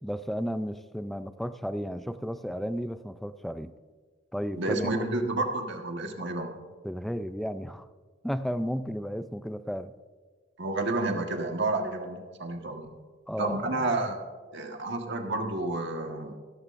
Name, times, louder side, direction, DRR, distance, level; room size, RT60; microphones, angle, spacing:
voice 1, 0.0-3.7 4.3-5.0 6.8-7.9 8.2-9.9 13.3-13.8, equal, ahead, 12 dB, 0.3 m, -33 dB
voice 2, 4.6-6.5 10.6-12.9 13.4-14.2 14.5-16.3, right 2 dB, 60° right, 3 dB, 1.4 m, -30 dB
15.5 x 14.5 x 2.5 m, 1.4 s
head